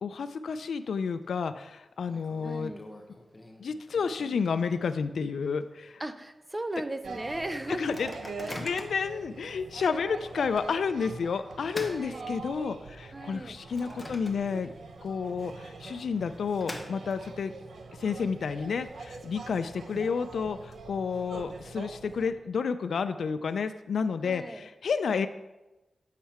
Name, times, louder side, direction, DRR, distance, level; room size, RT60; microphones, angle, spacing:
voice 1, 0.0-2.7 3.6-6.0 7.7-8.1 8.5-14.7 15.0-17.5 18.0-25.3, left 5 dB, 80° left, 10 dB, 0.3 m, -31 dB
Microwave oven, 0.8-1.4 1.6-1.7 2.1-5.2 5.6-5.7 5.9-6.3 6.8-6.9 7.6-9.1 9.7-9.9 11.0-12.8 13.3-14.8 15.1-15.2 16.0-17.4, left 1 dB, 15° left, 0.9 m, -44 dB
voice 2, 2.4-2.8 6.0-7.9 8.5-8.7 11.8-12.3 13.1-13.5 24.2-24.7, right 1 dB, 15° right, 9 dB, 0.5 m, -37 dB
sound 1, 7.0-22.3, right 3 dB, 80° right, 0.6 m, -44 dB
7.4 x 5.7 x 4.2 m, 1.0 s
wide cardioid pair, 120°, 0 cm